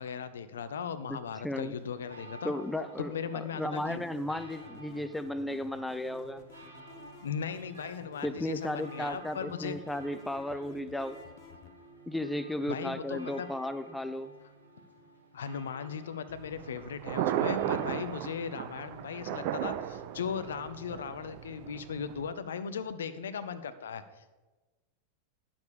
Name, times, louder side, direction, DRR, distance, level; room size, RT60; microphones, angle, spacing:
voice 1, 0.0-2.5 3.1-4.0 7.2-9.8 12.7-13.5 15.3-24.5, left 7 dB, 65° left, 12 dB, 0.6 m, -38 dB
voice 2, 1.4-1.7 2.4-6.4 8.2-11.2 12.1-14.3, left 1 dB, 5° left, 12 dB, 0.4 m, -34 dB
sound 1, 1.7-18.3, right 2 dB, 75° right, 1.7 m, -53 dB
sound 2, 3.7-11.7, left 6 dB, 40° left, 0.9 m, -54 dB
Thunder, 16.3-22.3, right 11 dB, 45° right, 0.6 m, -35 dB
10.5 x 7.0 x 5.1 m, 1.2 s
figure-of-eight pair, 90°, 0 cm